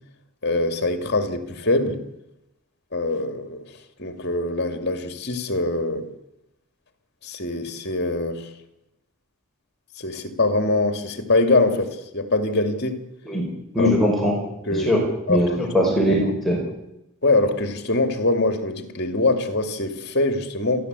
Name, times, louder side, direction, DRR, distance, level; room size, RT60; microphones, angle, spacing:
voice 1, 0.4-2.0 2.9-3.7 4.0-6.1 7.2-8.5 10.0-13.0 13.8-13.9 14.7-14.9 15.3-15.6 16.0-16.2 17.2-20.9, left 2 dB, 50° left, 2.4 m, -23 dB
voice 2, 13.7-14.3 14.8-15.0 15.3-16.6, equal, ahead, 5.2 m, -20 dB
28.5 x 12.0 x 8.2 m
head